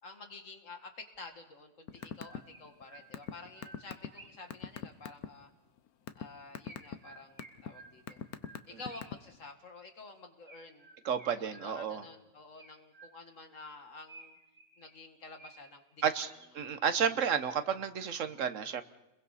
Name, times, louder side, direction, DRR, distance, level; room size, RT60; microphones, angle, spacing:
voice 1, 0.0-5.5 6.2-8.2 8.7-10.9 11.3-14.4 14.8-16.2 16.6-16.8, left 3 dB, 60° left, 5 dB, 2.2 m, -50 dB
Chirp tweet, 1.1-1.2 1.9-4.6 6.6-9.3 10.5-12.1 12.6-13.5 14.1-15.8 16.3-17.8, right 2 dB, 25° right, 2.2 m, -56 dB
sound 1, 1.9-2.4 2.7-5.3 5.8-6.2 6.5-6.9 7.4-7.7 8.1-9.4, left 8 dB, 85° left, 1.4 m, -39 dB
voice 2, 11.0-12.0 16.0-18.8, right 7 dB, 60° right, 11 dB, 1.3 m, -31 dB
29.5 x 22.0 x 4.2 m, 0.94 s
omnidirectional pair, 1.5 m